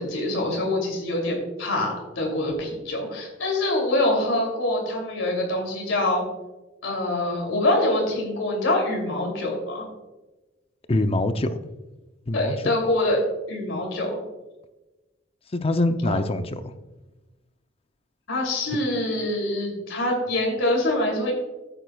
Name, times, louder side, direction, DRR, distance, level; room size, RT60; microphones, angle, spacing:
voice 1, 0.0-6.2 6.8-9.9 12.3-13.2 13.5-14.1 16.0-16.2 18.3-21.3, left 1 dB, 85° left, 0 dB, 2.9 m, -25 dB
voice 2, 10.9-11.6 12.3-12.7 15.5-16.7, left 2 dB, 30° left, 9 dB, 0.5 m, -24 dB
14.5 x 9.1 x 2.3 m, 1.1 s
head